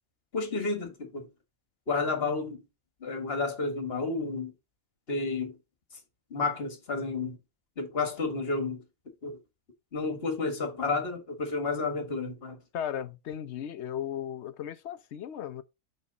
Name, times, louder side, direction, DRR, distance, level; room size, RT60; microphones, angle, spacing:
voice 1, 0.3-1.3 1.9-2.6 3.0-4.5 5.1-5.5 6.3-7.4 7.8-8.8 9.2-9.4 9.9-12.6, left 3 dB, 45° left, 1.8 m, -31 dB
voice 2, 12.7-15.6, left 9 dB, 60° left, 0.8 m, -36 dB
6.1 x 5.4 x 4.0 m
omnidirectional pair, 1.4 m